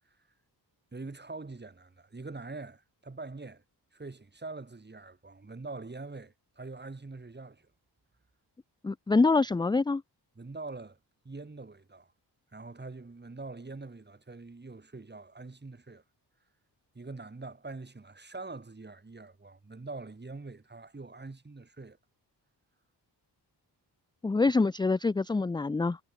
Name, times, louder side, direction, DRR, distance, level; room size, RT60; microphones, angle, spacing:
voice 1, 0.9-3.6 3.9-7.7 10.3-11.0 11.2-12.1 12.5-16.0 16.9-22.0, right 3 dB, 25° right, 6.3 m, -44 dB
voice 2, 8.8-10.0 24.2-26.0, left 3 dB, 10° left, 0.3 m, -25 dB
wide cardioid pair, 135°, 42 cm